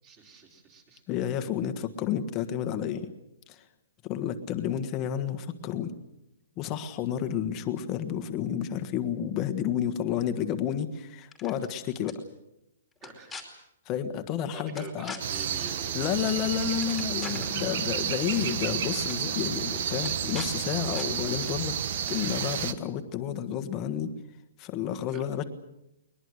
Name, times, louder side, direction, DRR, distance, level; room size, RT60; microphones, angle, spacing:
voice 1, 0.0-1.0 13.0-13.5 14.5-16.4 17.5-17.8 18.2-18.6 25.1-25.2, right 3 dB, 20° right, 3 dB, 4.3 m, -46 dB
voice 2, 1.1-3.1 3.5-3.6 4.0-5.9 6.6-12.2 13.8-15.1 15.9-21.8 22.1-24.1 24.6-25.4, left 9 dB, 20° left, 8 dB, 1.5 m, -30 dB
sound 1, 11.2-11.7 12.1-12.2 13.0-13.4 14.8-15.2 16.3-16.4 16.7-17.5 18.5-18.6 18.9-19.2 20.0-20.5 20.9-21.1, left 5 dB, 5° left, 2.7 m, -42 dB
sound 2, 15.2-22.7, right 8 dB, 45° right, 1.3 m, -31 dB
21.5 x 21.0 x 8.1 m, 0.87 s
hypercardioid pair, 170°, 0 cm